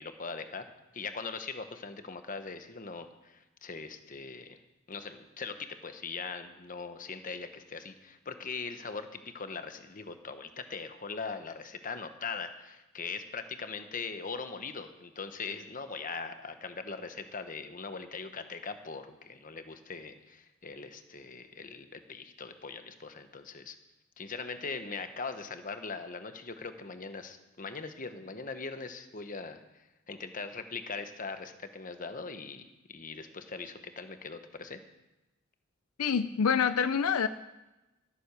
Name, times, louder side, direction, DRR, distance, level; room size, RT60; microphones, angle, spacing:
voice 1, 0.0-4.6 4.9-23.8 24.2-34.8, left 4 dB, 40° left, 8 dB, 1.1 m, -41 dB
voice 2, 36.0-37.3, left 6 dB, 85° left, 12 dB, 0.6 m, -26 dB
13.5 x 9.6 x 6.8 m, 1.0 s
head